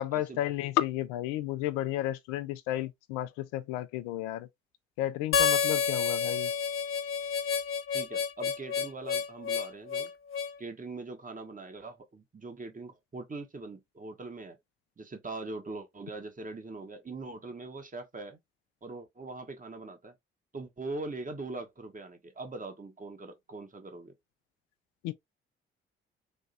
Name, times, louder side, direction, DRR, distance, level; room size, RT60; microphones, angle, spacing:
voice 1, 0.0-4.5 5.0-6.5 25.0-25.1, left 14 dB, 70° left, 0.5 m, -32 dB
Harmonica, 5.3-10.5, left 6 dB, 45° left, 0.7 m, -29 dB
voice 2, 7.9-10.1 10.6-14.6 15.0-18.4 18.8-20.1 20.5-24.1, right 3 dB, 25° right, 1.3 m, -42 dB
3.4 x 2.8 x 2.7 m
hypercardioid pair, 40°, 31 cm